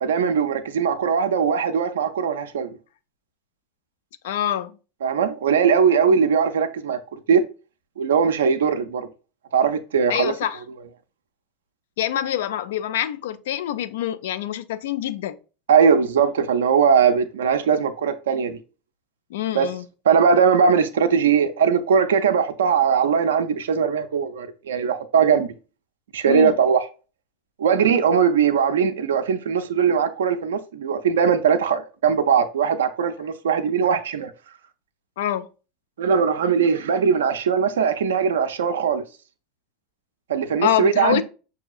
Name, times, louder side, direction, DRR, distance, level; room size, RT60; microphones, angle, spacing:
voice 1, 0.0-2.7 5.0-7.4 8.0-9.1 9.5-10.3 15.7-18.6 19.5-19.7 20.0-25.5 26.1-26.9 27.6-34.3 36.0-39.0 40.3-41.2, right 6 dB, 75° right, 0.4 m, -20 dB
voice 2, 4.2-4.8 6.1-6.2 10.1-10.6 12.0-15.4 19.3-19.8 26.3-26.5 35.2-35.5 40.6-41.2, left 11 dB, 70° left, 0.3 m, -25 dB
5.9 x 2.7 x 2.3 m
hypercardioid pair, 85°, 0 cm